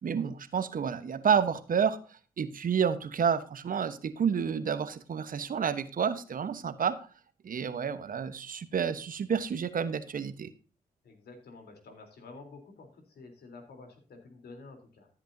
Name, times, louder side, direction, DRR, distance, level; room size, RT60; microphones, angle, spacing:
voice 1, 0.0-2.0 2.4-7.0 7.4-10.5, right 7 dB, 55° right, 13 dB, 1.1 m, -29 dB
voice 2, 11.0-15.1, left 3 dB, 70° left, 5 dB, 3.6 m, -50 dB
14.0 x 8.2 x 2.7 m, 0.38 s
supercardioid pair, 50°, 17 cm